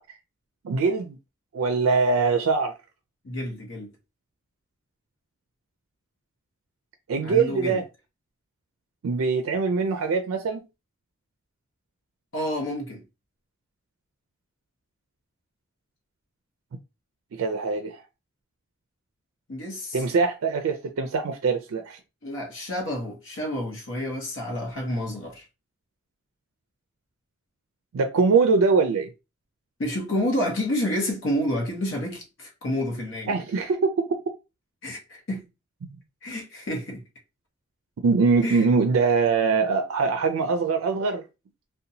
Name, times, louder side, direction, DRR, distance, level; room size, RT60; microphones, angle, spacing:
voice 1, 0.6-1.2 1.5-2.7 7.1-7.8 9.0-10.6 17.3-18.0 19.9-22.0 27.9-29.1 33.3-34.1 38.0-41.2, right 4 dB, 85° right, 0.4 m, -23 dB
voice 2, 3.2-3.9 7.2-7.8 12.3-13.0 19.5-20.0 22.2-25.4 29.8-33.4 34.8-35.5 36.2-37.0 38.4-38.6, left 1 dB, 60° left, 0.7 m, -29 dB
2.8 x 2.2 x 2.6 m
head